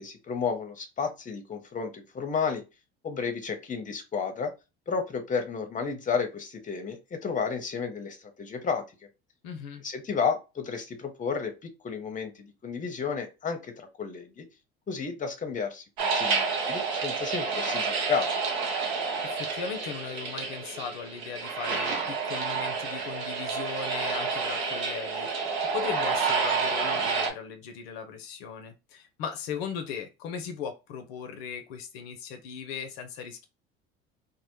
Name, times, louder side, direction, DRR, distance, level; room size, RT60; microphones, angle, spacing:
voice 1, 0.0-2.6 3.0-4.5 4.9-8.8 9.8-14.5 14.9-18.4, left 5 dB, 25° left, 0.7 m, -32 dB
voice 2, 9.4-9.8 18.9-25.5 25.7-33.4, left 7 dB, 70° left, 0.5 m, -38 dB
sound 1, 16.0-27.3, right 4 dB, 75° right, 0.7 m, -29 dB
2.0 x 2.0 x 2.9 m
hypercardioid pair, 65°, 32 cm